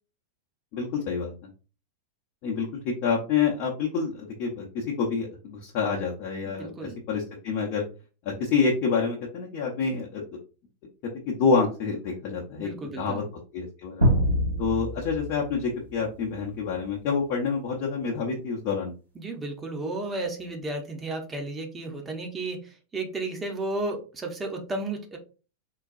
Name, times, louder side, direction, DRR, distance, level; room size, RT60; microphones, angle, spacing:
voice 1, 0.7-1.3 2.4-7.8 8.3-10.2 11.3-12.7 13.0-13.2 13.5-14.1 14.6-18.9, left 5 dB, 45° left, -2 dB, 0.7 m, -27 dB
voice 2, 6.4-7.0 12.5-13.2 19.1-25.2, right 2 dB, 15° right, 2 dB, 0.8 m, -33 dB
sound 1, 14.0-16.6, equal, 80° right, 1.4 m, -26 dB
3.8 x 2.2 x 2.5 m, 0.35 s
figure-of-eight pair, 90°, 0 cm